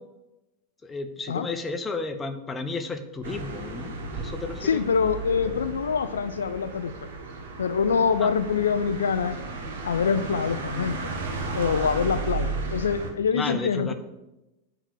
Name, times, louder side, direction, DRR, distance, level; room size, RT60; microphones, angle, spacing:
voice 1, 0.8-5.5 8.2-8.3 13.3-13.9, left 3 dB, 15° left, 7 dB, 0.9 m, -33 dB
sound 1, 3.2-13.1, right 3 dB, 60° right, 1.4 m, -34 dB
voice 2, 4.6-6.9 7.6-9.4 9.8-11.1 11.5-13.9, left 6 dB, 70° left, 10 dB, 0.4 m, -25 dB
8.9 x 5.0 x 6.6 m, 0.97 s
figure-of-eight pair, 90°, 0 cm